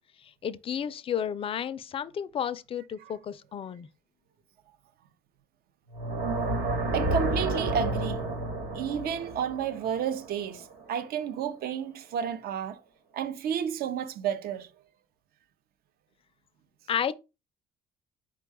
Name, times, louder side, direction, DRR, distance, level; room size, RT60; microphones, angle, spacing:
voice 1, 0.4-3.9 16.9-17.1, left 8 dB, 35° left, 0.4 m, -32 dB
sound 1, 5.9-11.0, right 2 dB, 80° right, 1.3 m, -31 dB
voice 2, 6.9-8.2 8.7-12.8 13.1-14.7, right 8 dB, 65° right, 0.6 m, -31 dB
4.5 x 2.3 x 4.6 m
cardioid pair, 110°, 17 cm